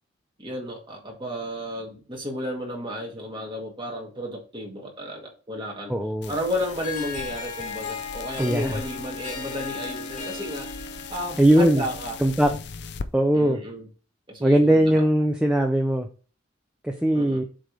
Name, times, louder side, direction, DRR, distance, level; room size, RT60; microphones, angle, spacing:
voice 1, 0.4-5.9 6.3-10.7 11.1-12.2 13.3-13.8 14.3-15.0 17.1-17.4, left 1 dB, 25° right, 0 dB, 1.9 m, -32 dB
voice 2, 5.9-6.3 8.4-8.8 11.4-11.8 12.2-12.5 13.1-13.6 14.4-16.1 16.8-17.4, right 1 dB, 5° right, 3 dB, 0.5 m, -20 dB
sound 1, 6.2-13.1, left 5 dB, 60° left, 0.5 m, -40 dB
Harp, 6.6-12.4, left 4 dB, 40° left, 1.5 m, -36 dB
7.4 x 3.5 x 4.6 m, 0.36 s
head